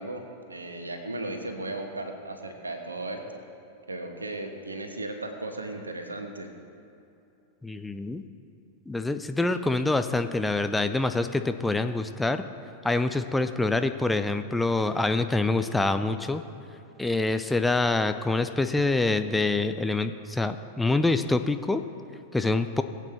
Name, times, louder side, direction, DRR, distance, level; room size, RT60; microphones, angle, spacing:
voice 1, 0.0-3.4 3.9-6.5, right 2 dB, 80° right, 5 dB, 1.2 m, -36 dB
voice 2, 7.6-8.2 8.9-12.5 12.8-16.4 17.0-21.8 22.3-22.8, left 2 dB, 5° left, 8 dB, 0.5 m, -26 dB
20.5 x 8.3 x 3.4 m, 2.7 s
figure-of-eight pair, 90°, 0 cm